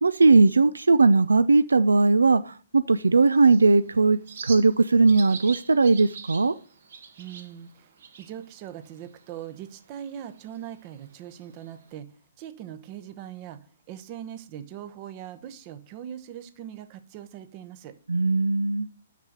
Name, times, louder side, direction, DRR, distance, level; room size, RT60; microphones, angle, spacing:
voice 1, 0.0-4.2 4.4-6.5 18.1-18.9, right 3 dB, 85° right, 14 dB, 0.4 m, -19 dB
Bird, 3.0-11.9, right 6 dB, 65° right, 1.4 m, -46 dB
voice 2, 7.2-7.9 8.2-12.1 12.4-13.6 13.9-17.9, right 10 dB, 35° right, 11 dB, 0.9 m, -40 dB
6.0 x 5.9 x 6.5 m, 0.39 s
figure-of-eight pair, 130°, 0 cm